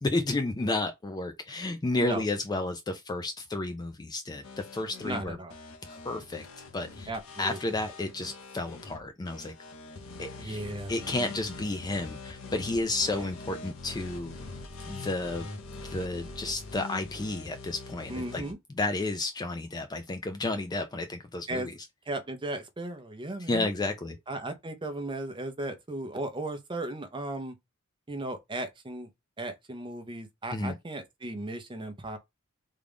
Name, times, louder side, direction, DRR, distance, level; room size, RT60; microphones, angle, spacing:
voice 1, 0.0-5.4 5.8-6.5 6.7-7.1 7.4-9.5 10.2-10.6 10.9-14.3 14.9-15.5 15.8-18.4 18.8-21.7 23.4-24.2 30.5-30.7, left 2 dB, 20° left, 0.3 m, -32 dB
sound 1, 4.4-18.5, left 3 dB, 70° left, 0.8 m, -43 dB
voice 2, 5.0-5.5 7.1-7.6 10.4-11.3 13.2-13.3 18.1-18.6 21.5-21.7 22.1-23.7 24.3-27.6 28.1-29.1 29.4-32.2, right 2 dB, 25° right, 0.6 m, -36 dB
3.7 x 2.3 x 3.4 m
head